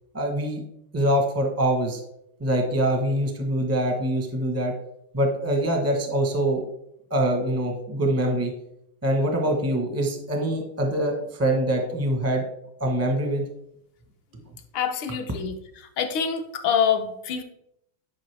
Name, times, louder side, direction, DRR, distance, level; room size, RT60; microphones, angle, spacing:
voice 1, 0.1-0.6 0.9-2.0 2.4-4.7 5.1-6.6 7.1-8.5 9.0-12.4 12.8-13.4, right 1 dB, 20° right, 3 dB, 0.4 m, -24 dB
voice 2, 14.7-15.5 15.8-17.4, left 7 dB, 70° left, 6 dB, 1.5 m, -25 dB
10.0 x 5.0 x 3.4 m, 0.76 s
omnidirectional pair, 2.4 m